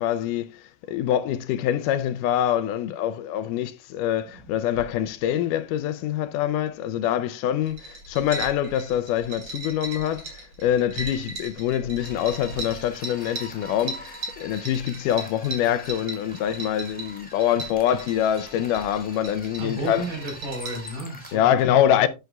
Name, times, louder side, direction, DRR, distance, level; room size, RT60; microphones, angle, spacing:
voice 1, 0.0-20.1 21.3-22.1, left 10 dB, 80° left, 2.2 m, -25 dB
sound 1, 7.6-20.9, right 3 dB, 45° right, 4.1 m, -38 dB
sound 2, 12.0-21.4, left 1 dB, 5° left, 3.3 m, -45 dB
voice 2, 19.6-22.1, right 1 dB, 70° right, 5.8 m, -33 dB
11.0 x 9.2 x 2.3 m
omnidirectional pair, 3.8 m